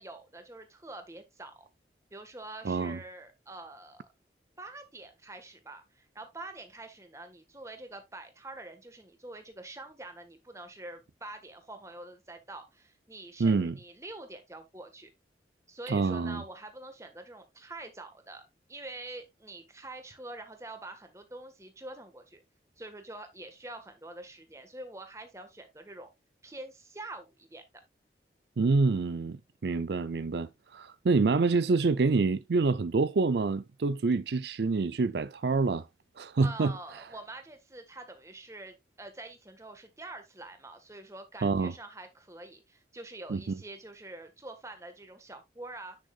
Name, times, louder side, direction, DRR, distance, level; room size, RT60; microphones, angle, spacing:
voice 1, 0.0-1.7 2.1-4.1 4.6-15.1 15.7-22.4 22.8-26.1 26.4-27.6 36.4-46.0, right 2 dB, 15° right, 1.5 m, -46 dB
voice 2, 2.6-3.0 13.4-13.7 15.9-16.4 28.6-35.9 36.2-36.8 41.4-41.7 43.3-43.4, right 4 dB, 70° right, 0.5 m, -27 dB
10.0 x 6.5 x 2.4 m
head